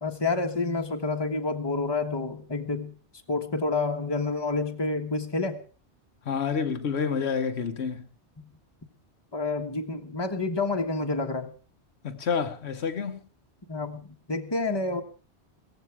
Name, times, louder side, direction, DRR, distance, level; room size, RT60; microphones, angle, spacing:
voice 1, 0.0-2.9 3.3-5.6 9.3-11.5 13.7-15.0, left 3 dB, 20° left, 1.4 m, -29 dB
voice 2, 6.2-8.1 12.0-13.2, left 6 dB, 70° left, 1.2 m, -28 dB
17.0 x 14.5 x 4.7 m
omnidirectional pair, 1.1 m